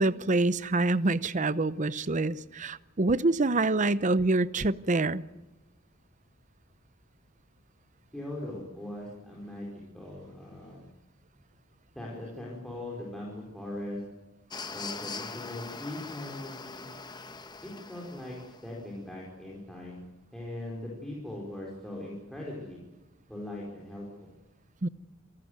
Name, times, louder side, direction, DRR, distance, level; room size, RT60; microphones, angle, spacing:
voice 1, 0.0-5.2 24.8-24.9, right 2 dB, 35° right, 0.7 m, -26 dB
voice 2, 8.1-10.9 11.9-14.0 14.7-16.8 17.6-20.0 20.3-22.8 23.3-24.3, left 1 dB, ahead, 5.0 m, -40 dB
sound 1, 14.5-18.7, left 4 dB, 20° left, 1.1 m, -42 dB
27.5 x 13.5 x 9.5 m
head